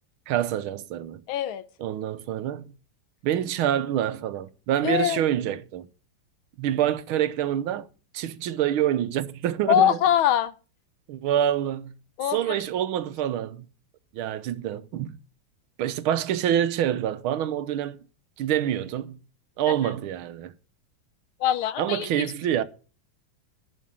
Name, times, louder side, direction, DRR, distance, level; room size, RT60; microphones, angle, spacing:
voice 1, 0.3-1.2 1.8-2.7 3.2-5.9 6.6-7.9 8.1-10.0 11.1-12.0 12.3-13.6 14.1-15.2 15.8-18.0 18.4-19.2 19.6-20.5 21.8-22.6, right 11 dB, 90° right, 1.7 m, -26 dB
voice 2, 1.3-1.6 4.8-5.2 9.7-10.5 12.2-12.4 19.7-19.8 21.4-22.3, left 10 dB, 80° left, 1.7 m, -23 dB
11.0 x 6.4 x 8.6 m
omnidirectional pair, 2.2 m